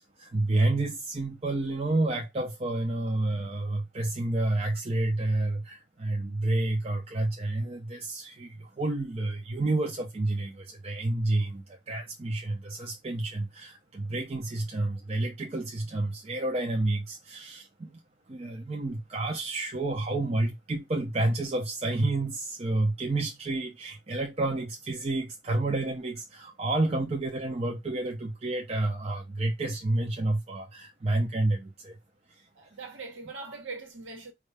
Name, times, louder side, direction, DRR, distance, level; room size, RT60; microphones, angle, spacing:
voice 1, 0.0-17.9 18.3-31.9, right 2 dB, 30° right, 0.5 m, -30 dB
voice 2, 32.5-34.3, right 3 dB, 90° right, 1.1 m, -41 dB
4.5 x 2.3 x 3.2 m
head